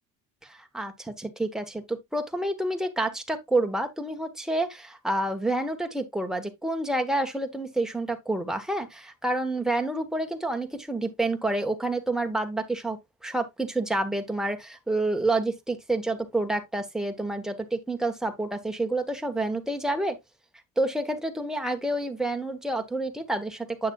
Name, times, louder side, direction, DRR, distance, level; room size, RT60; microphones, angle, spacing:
voice 1, 0.4-13.0 13.2-20.2 20.8-23.9, right 2 dB, ahead, 1.2 m, -28 dB
8.5 x 6.5 x 2.3 m
cardioid pair, 115°, 36 cm